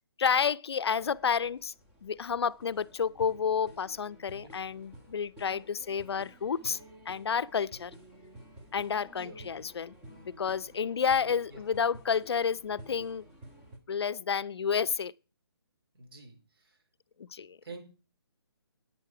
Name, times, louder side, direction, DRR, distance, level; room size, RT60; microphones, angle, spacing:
voice 1, 0.2-1.7 2.0-6.8 7.1-7.9 8.7-10.0 10.4-13.2 13.9-15.1 17.2-17.6, left 6 dB, 70° left, 0.5 m, -30 dB
sound 1, 0.9-13.8, right 1 dB, 10° right, 1.4 m, -52 dB
voice 2, 4.3-4.8 9.2-9.4 11.5-11.6 16.0-16.8 17.6-17.8, right 3 dB, 60° right, 4.1 m, -49 dB
10.5 x 9.1 x 4.8 m
hypercardioid pair, 165°, 14 cm